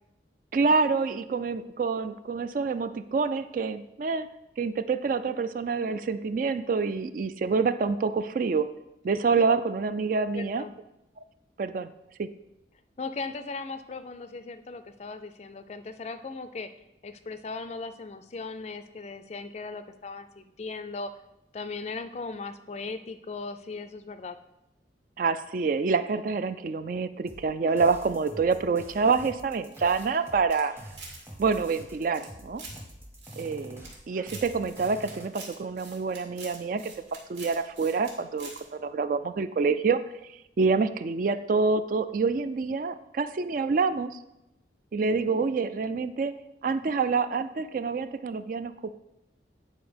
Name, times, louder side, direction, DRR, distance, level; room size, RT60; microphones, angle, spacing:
voice 1, 0.5-4.3 4.6-8.7 9.0-10.6 11.6-11.9 12.2-12.3 25.2-30.7 31.4-32.6 33.4-36.9 37.3-44.2 44.9-46.3 46.6-48.9, right 4 dB, 45° right, 12 dB, 0.3 m, -27 dB
voice 2, 10.3-10.7 13.0-16.7 17.0-21.1 21.5-24.4, left 3 dB, 35° left, 10 dB, 0.4 m, -38 dB
sound 1, 27.3-35.3, equal, 15° right, 0.8 m, -46 dB
sound 2, 29.7-31.2 31.5-32.8 33.2-34.0 34.2-38.1 38.4-38.6, right 4 dB, 85° right, 2.1 m, -46 dB
9.1 x 4.3 x 5.1 m, 0.90 s
head